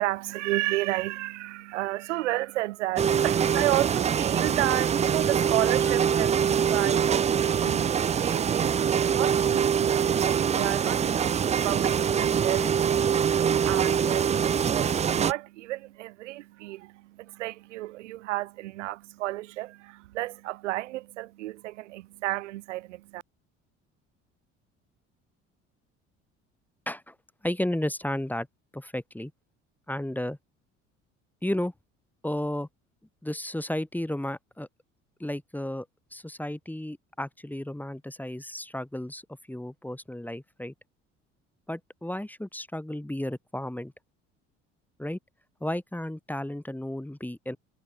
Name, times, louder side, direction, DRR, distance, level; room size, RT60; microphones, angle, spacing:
voice 1, 0.0-23.2, right 17 dB, 85° right, 1.0 m, -32 dB
sound 1, 3.0-15.3, right 7 dB, 20° right, 0.4 m, -24 dB
voice 2, 27.4-28.5 28.7-29.3 29.9-30.4 31.4-31.7 32.2-32.7 33.2-34.7 35.2-35.9 36.1-39.2 39.5-40.7 41.7-43.9 45.0-45.2 45.6-47.6, left 1 dB, 5° left, 1.6 m, -33 dB
hypercardioid pair, 60°, 35 cm